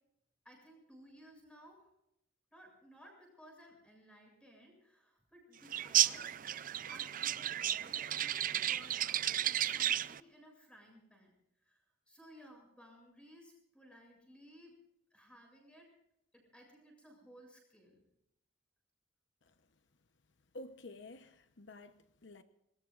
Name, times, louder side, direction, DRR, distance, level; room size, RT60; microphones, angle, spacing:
voice 1, 0.4-1.9 2.5-6.4 6.9-11.3 11.6-14.8 15.1-15.9 16.3-18.0, equal, 5° left, 7.6 m, -59 dB
sound 1, 5.7-10.2, right 11 dB, 45° right, 0.5 m, -33 dB
voice 2, 20.5-22.4, left 2 dB, 70° left, 1.0 m, -51 dB
26.5 x 21.5 x 2.5 m
head